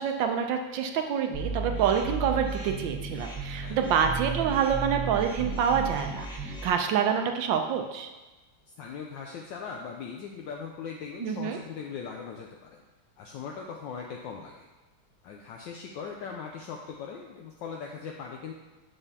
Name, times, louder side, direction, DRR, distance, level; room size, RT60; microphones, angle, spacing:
voice 1, 0.0-8.1 11.2-11.6, right 7 dB, 75° right, 5 dB, 1.2 m, -27 dB
sound 1, 1.3-6.7, right 3 dB, 5° right, 1.2 m, -34 dB
voice 2, 8.8-12.8 13.2-14.6 15.2-18.5, left 6 dB, 75° left, 0 dB, 1.2 m, -39 dB
7.0 x 6.9 x 2.8 m, 1.1 s
omnidirectional pair, 2.3 m